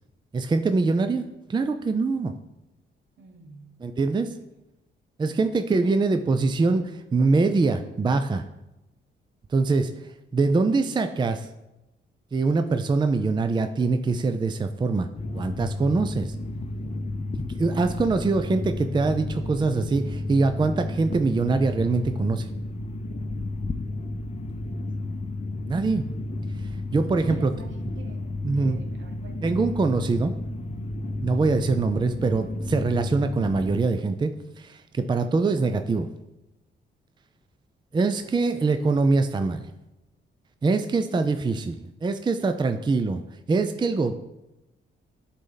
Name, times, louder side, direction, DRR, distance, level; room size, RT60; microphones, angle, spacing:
voice 1, 0.3-1.2 1.5-2.3 3.8-4.3 5.2-8.4 9.5-9.9 10.3-11.5 12.3-15.1 15.3-16.3 17.4-22.5 25.7-26.0 26.9-27.5 28.4-28.8 29.4-30.3 31.2-36.1 37.9-39.7 40.6-43.2 43.5-44.1, right 3 dB, 20° right, 0.4 m, -23 dB
voice 2, 3.2-3.8 5.3-6.0 24.5-25.4 27.2-29.7 38.1-38.3, right 3 dB, 70° right, 1.1 m, -50 dB
sound 1, 15.2-33.8, left 2 dB, 30° left, 0.6 m, -32 dB
11.0 x 4.1 x 3.9 m
cardioid pair, 90°, 21 cm